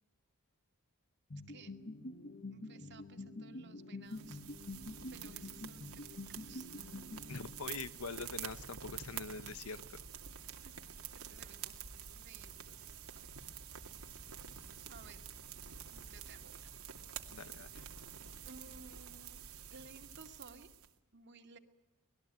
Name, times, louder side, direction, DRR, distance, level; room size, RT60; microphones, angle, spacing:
sound 1, 1.3-8.0, left 2 dB, 45° left, 1.6 m, -47 dB
voice 1, 2.5-4.4 4.8-6.7 10.6-10.9 11.1-13.3 14.9-15.2 15.9-16.7 17.2-17.5 18.4-19.4 19.7-20.7 21.1-21.6, right 4 dB, 50° right, 6 dB, 2.3 m, -58 dB
sound 2, 4.1-20.9, right 8 dB, 80° right, 2.5 m, -48 dB
voice 2, 7.3-10.0 17.3-17.9, left 4 dB, 75° left, 13 dB, 1.1 m, -44 dB
25.5 x 20.0 x 8.9 m, 1.0 s
head